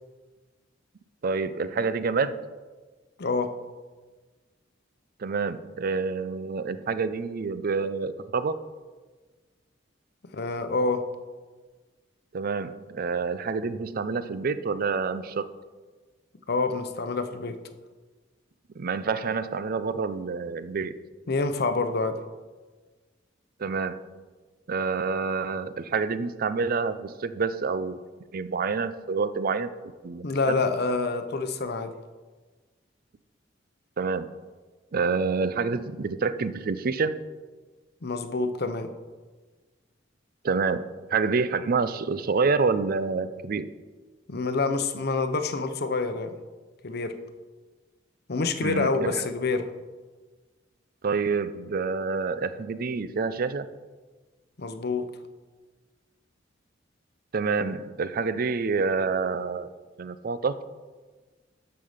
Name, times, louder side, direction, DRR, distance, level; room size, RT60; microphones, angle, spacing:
voice 1, 1.2-2.5 5.2-8.5 12.3-15.5 18.8-21.0 23.6-24.1 24.7-28.0 28.3-29.7 30.0-30.6 34.0-34.3 34.9-37.1 40.4-43.7 48.6-49.2 51.0-53.7 57.3-59.7 60.0-60.6, right 4 dB, 50° right, 13 dB, 0.5 m, -27 dB
voice 2, 3.2-3.5 10.3-11.0 16.5-17.6 21.3-22.2 30.2-31.9 38.0-38.9 44.3-46.4 46.8-47.1 48.3-49.7 54.6-55.1, left 3 dB, 60° left, 9 dB, 0.7 m, -27 dB
12.5 x 5.6 x 5.1 m, 1.3 s
head